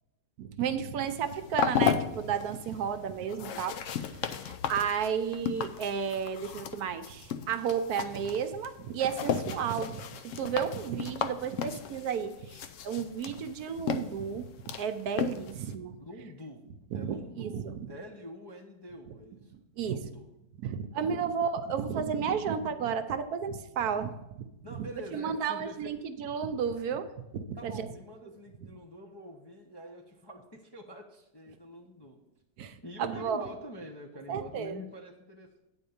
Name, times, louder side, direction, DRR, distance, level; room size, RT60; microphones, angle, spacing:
voice 1, 0.4-3.7 4.4-16.0 16.9-17.9 19.8-20.0 20.6-24.1 24.7-24.9 25.1-27.9 32.6-33.5 34.3-34.8, right 7 dB, 75° right, 9 dB, 1.1 m, -32 dB
sound 1, 1.1-15.8, left 8 dB, 65° left, 0.8 m, -35 dB
voice 2, 3.2-3.6 9.2-9.6 16.0-16.6 16.9-19.6 19.9-20.3 21.0-21.2 23.8-24.1 24.6-25.9 27.5-32.2 32.8-35.6, equal, 30° left, -1 dB, 0.4 m, -46 dB
8.9 x 4.4 x 6.9 m, 0.92 s
omnidirectional pair, 1.7 m